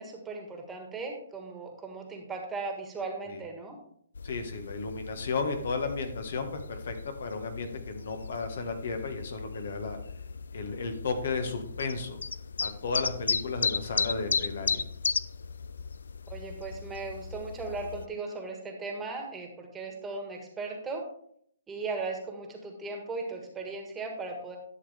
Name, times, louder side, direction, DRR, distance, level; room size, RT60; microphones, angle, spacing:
voice 1, 0.0-3.7 16.3-21.1 21.7-24.6, right 3 dB, 10° right, 2 dB, 1.6 m, -37 dB
sound 1, 4.2-18.1, left 5 dB, 80° left, 0.4 m, -35 dB
voice 2, 4.2-10.0 10.5-12.2 12.6-14.8, left 4 dB, 65° left, 6 dB, 1.5 m, -34 dB
11.5 x 6.6 x 3.5 m, 0.66 s
hypercardioid pair, 145°, 0 cm